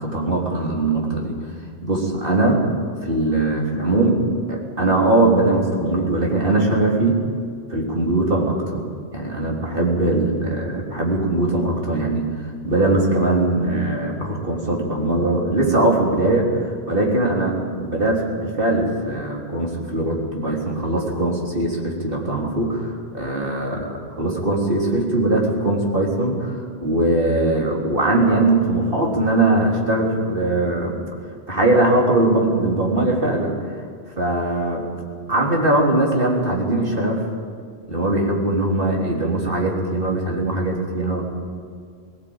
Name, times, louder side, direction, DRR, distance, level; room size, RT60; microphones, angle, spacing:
voice 1, 0.0-1.3 1.8-2.6 3.0-4.2 4.5-7.2 7.7-31.0 31.5-33.6 34.2-34.9 35.3-37.3 37.9-41.2, right 2 dB, 60° right, -1 dB, 3.8 m, -21 dB
19.0 x 18.5 x 8.9 m, 2.2 s
omnidirectional pair, 1.1 m